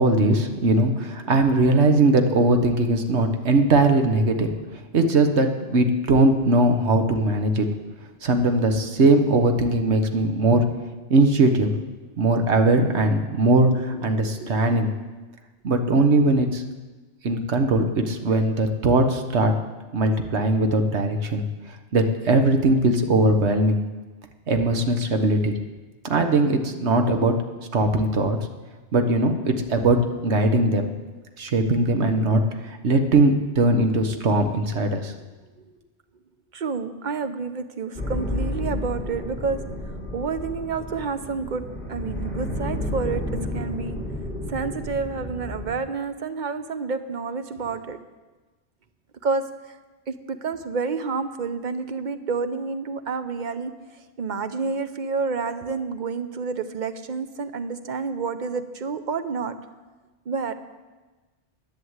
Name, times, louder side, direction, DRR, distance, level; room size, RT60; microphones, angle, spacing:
voice 1, 0.0-4.5 4.9-7.7 8.2-10.6 11.1-11.7 12.2-14.9 15.6-16.6 17.2-19.5 19.9-21.4 21.9-23.8 24.5-25.6 26.0-27.4 27.7-28.5 28.9-30.9 31.4-35.1, right 2 dB, 70° right, 6 dB, 1.4 m, -20 dB
voice 2, 36.5-39.6 40.1-41.6 41.9-43.2 43.5-44.0 44.5-48.0 49.2-49.8 50.1-53.7 54.2-59.5 60.3-60.5, right 4 dB, 45° right, 10 dB, 0.8 m, -29 dB
sound 1, 37.9-45.7, left 1 dB, 5° right, 2.5 m, -31 dB
11.0 x 9.5 x 8.0 m, 1.2 s
omnidirectional pair, 1.2 m